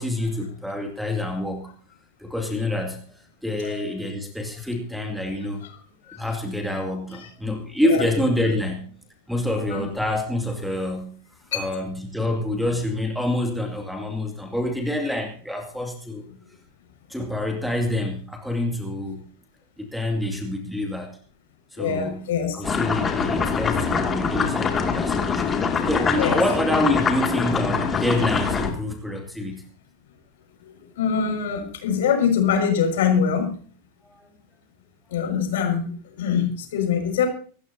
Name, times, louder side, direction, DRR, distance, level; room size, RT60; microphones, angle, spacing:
voice 1, 0.0-1.7 2.2-5.6 6.1-8.9 9.3-11.2 11.5-16.2 17.1-19.3 19.8-21.2 21.7-22.3 22.5-25.5 25.9-29.6 34.0-34.3, left 1 dB, ahead, 4 dB, 2.4 m, -27 dB
voice 2, 21.8-22.6 26.2-26.4 30.6-33.6 35.1-37.3, left 7 dB, 55° left, 4 dB, 5.8 m, -24 dB
sound 1, 22.6-28.7, left 5 dB, 20° left, 2.4 m, -24 dB
26.0 x 13.5 x 2.8 m, 0.42 s
figure-of-eight pair, 90°, 0 cm